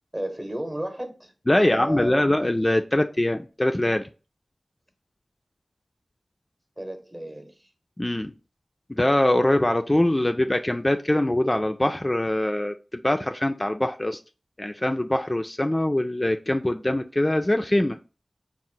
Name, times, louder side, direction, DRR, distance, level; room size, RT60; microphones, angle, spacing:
voice 1, 0.1-2.1 6.8-7.7, right 1 dB, 25° right, 0.8 m, -33 dB
voice 2, 1.5-4.0 8.0-8.3 8.9-14.2 14.6-18.0, left 1 dB, 25° left, 0.3 m, -23 dB
3.6 x 2.0 x 4.3 m
cardioid pair, 45°, 0 cm